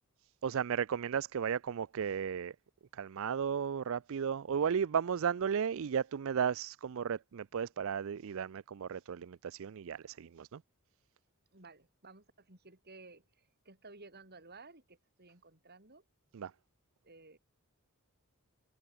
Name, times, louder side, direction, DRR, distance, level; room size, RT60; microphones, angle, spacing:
voice 1, 0.4-2.6 2.9-10.6 16.3-16.5, right 7 dB, 65° right, 0.4 m, -34 dB
voice 2, 11.5-16.0 17.0-17.4, right 3 dB, 45° right, 5.9 m, -55 dB
head